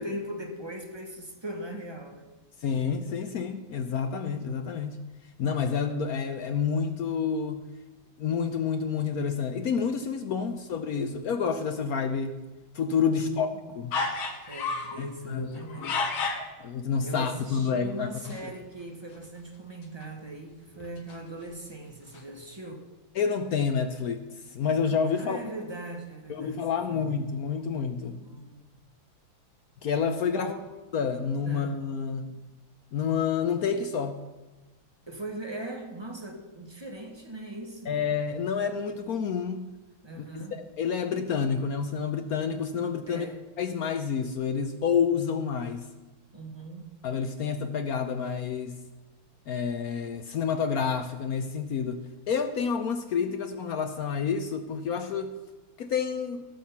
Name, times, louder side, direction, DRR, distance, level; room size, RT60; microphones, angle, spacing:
voice 1, 0.0-2.3 13.1-13.6 14.5-16.5 17.0-22.9 25.2-27.2 28.2-28.6 30.3-30.8 31.4-31.8 32.3-32.4 35.1-38.0 40.0-40.6 43.1-43.5 46.3-46.9, right 1 dB, 15° right, 2 dB, 1.1 m, -40 dB
voice 2, 2.6-5.0 5.4-7.6 8.2-12.4 12.7-13.5 13.8-13.9 15.0-15.5 15.8-15.9 16.6-18.4 23.2-24.2 24.5-25.4 26.3-28.2 29.8-30.5 30.9-32.3 32.9-34.2 37.9-39.8 40.2-40.4 40.8-43.3 43.6-45.9 47.0-48.8 49.5-55.3 55.8-56.5, left 6 dB, 65° left, 8 dB, 0.9 m, -29 dB
sound 1, 13.9-15.0 15.5-16.5 18.2-18.5 18.8-18.9 19.1-19.3 19.8-20.0 20.7-21.7 22.1-22.2, left 4 dB, 85° left, 2.3 m, -32 dB
17.5 x 6.4 x 5.7 m, 1.1 s
omnidirectional pair, 2.2 m